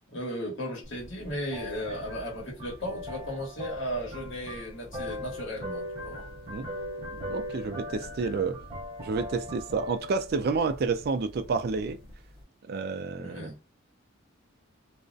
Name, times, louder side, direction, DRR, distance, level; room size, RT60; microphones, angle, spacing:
voice 1, 0.1-6.3 13.2-13.6, equal, 65° left, 1.1 m, -36 dB
sound 1, 0.8-12.4, left 1 dB, 25° right, 0.7 m, -40 dB
voice 2, 7.1-8.6 9.0-12.0 12.7-13.7, right 4 dB, 50° right, 0.3 m, -30 dB
2.4 x 2.0 x 2.5 m
head